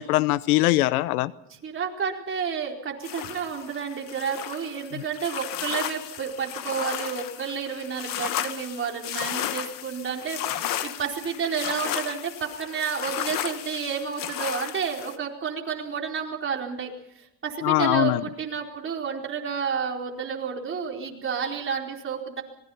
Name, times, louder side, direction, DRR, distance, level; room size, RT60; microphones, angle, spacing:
voice 1, 0.0-1.3 4.9-5.0 17.6-18.2, left 17 dB, 85° left, 0.9 m, -22 dB
voice 2, 1.5-16.9 17.4-22.4, right 6 dB, 30° right, 4.5 m, -30 dB
sound 1, 3.0-15.2, left 11 dB, 50° left, 1.7 m, -34 dB
26.0 x 20.5 x 5.8 m
supercardioid pair, 115°, 43 cm